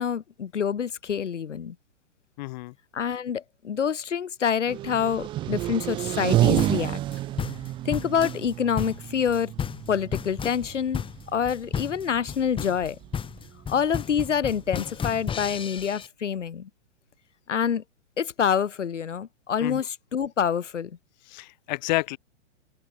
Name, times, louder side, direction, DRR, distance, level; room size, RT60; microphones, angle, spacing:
voice 1, 0.0-1.7 2.9-7.0 7.8-9.5 9.9-11.0 11.3-13.0 13.7-16.7 17.5-17.8 18.2-21.0, left 7 dB, 85° left, 1.1 m, -27 dB
voice 2, 2.4-2.7 19.6-19.8 21.3-22.2, left 20 dB, 40° left, 0.9 m, -30 dB
sound 1, 4.7-15.7, right 14 dB, 15° right, 0.5 m, -30 dB
sound 2, 6.6-16.1, left 7 dB, 15° left, 2.4 m, -33 dB
open air
hypercardioid pair, 125°, 35 cm